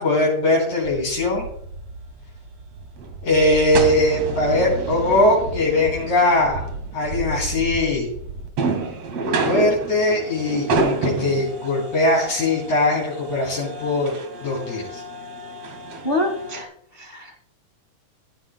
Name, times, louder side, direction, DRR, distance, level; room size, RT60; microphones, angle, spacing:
voice 1, 0.0-1.5 3.2-8.1 9.4-14.1 14.4-15.0, left 1 dB, 65° left, -4 dB, 4.8 m, -20 dB
sound 1, 0.8-16.6, right 3 dB, 60° right, 2.9 m, -29 dB
voice 2, 16.0-16.7 17.0-17.4, left 1 dB, 50° left, 3 dB, 0.6 m, -25 dB
15.5 x 14.0 x 2.2 m, 0.70 s
omnidirectional pair, 3.5 m